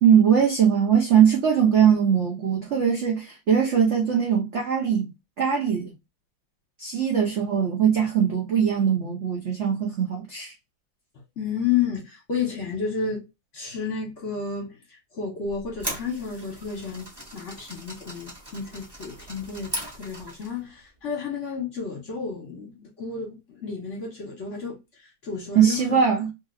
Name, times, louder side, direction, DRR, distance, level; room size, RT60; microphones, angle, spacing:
voice 1, 0.0-5.1 5.4-5.9 6.8-10.5 25.5-26.3, right 8 dB, 80° right, 0.6 m, -21 dB
voice 2, 11.4-13.2 13.5-14.8 15.1-24.8 25.2-25.8, left 6 dB, 50° left, 1.0 m, -31 dB
sound 1, 15.5-20.6, right 1 dB, 25° right, 0.5 m, -38 dB
2.9 x 2.8 x 2.5 m
omnidirectional pair, 2.2 m